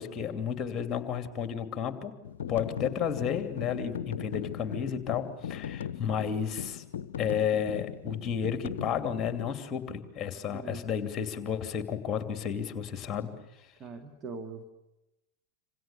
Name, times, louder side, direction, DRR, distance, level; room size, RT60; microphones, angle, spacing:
voice 1, 0.0-2.1 2.5-6.8 7.2-13.3, left 8 dB, 25° left, 9 dB, 2.7 m, -32 dB
sound 1, 2.2-9.6, left 9 dB, 60° left, 0.8 m, -39 dB
voice 2, 10.5-10.9 13.8-14.6, right 4 dB, 25° right, 5 dB, 2.2 m, -41 dB
27.0 x 26.5 x 7.0 m, 0.95 s
figure-of-eight pair, 90°, 0 cm